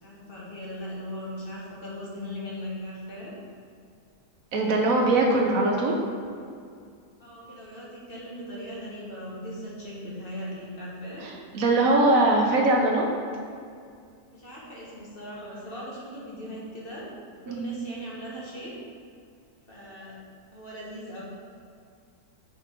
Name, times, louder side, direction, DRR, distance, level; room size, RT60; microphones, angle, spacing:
voice 1, 0.0-3.4 7.2-11.3 14.3-18.7 19.7-20.2 20.5-21.2, equal, 40° left, -6 dB, 1.6 m, -39 dB
voice 2, 4.5-6.0 11.2-13.1 17.5-17.7, right 2 dB, 65° right, 0 dB, 1.2 m, -22 dB
5.9 x 5.5 x 4.5 m, 2.3 s
omnidirectional pair, 1.6 m